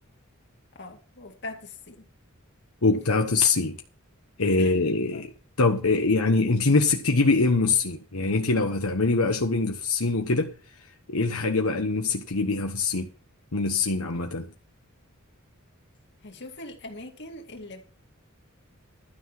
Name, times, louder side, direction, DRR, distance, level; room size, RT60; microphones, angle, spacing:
voice 1, 0.7-2.1 4.6-4.8 5.1-5.2 16.2-17.9, left 2 dB, 55° left, 2.4 m, -41 dB
voice 2, 2.8-3.8 4.4-5.3 5.6-10.5 11.1-13.1 13.5-14.5, left 3 dB, 80° left, 1.2 m, -23 dB
12.5 x 5.9 x 7.6 m
head